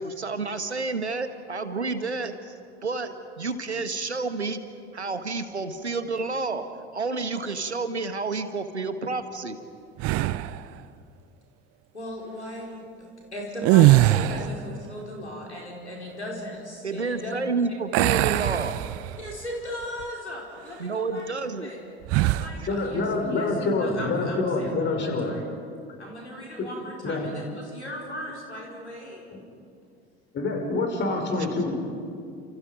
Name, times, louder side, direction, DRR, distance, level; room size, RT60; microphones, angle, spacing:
voice 1, 0.0-2.5 2.8-4.6 4.9-6.6 6.9-9.6 16.8-18.7 20.8-21.7, right 3 dB, 85° right, 10 dB, 1.4 m, -30 dB
sound 1, 10.0-10.6 13.6-14.7 17.9-19.4 19.8-20.0 22.1-22.6, right 15 dB, 45° right, 0.9 m, -21 dB
voice 2, 11.9-12.7 13.3-17.3 18.3-18.5 19.2-21.3 21.6-21.8 22.2-23.5 23.8-25.4 26.0-29.3, equal, 85° left, -2 dB, 5.0 m, -37 dB
voice 3, 22.7-25.3 26.6-26.7 27.0-27.3 30.3-31.7, left 3 dB, 35° left, 3 dB, 5.6 m, -26 dB
30.0 x 28.0 x 5.2 m, 2.4 s
figure-of-eight pair, 65°, 33 cm